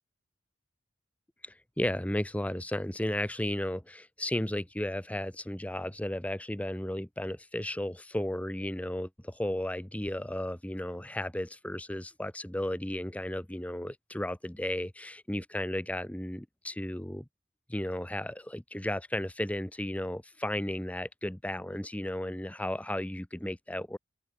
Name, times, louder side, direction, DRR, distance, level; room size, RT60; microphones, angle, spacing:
voice 1, 1.4-17.2 17.7-24.0, left 1 dB, 5° left, 0.9 m, -34 dB
open air
head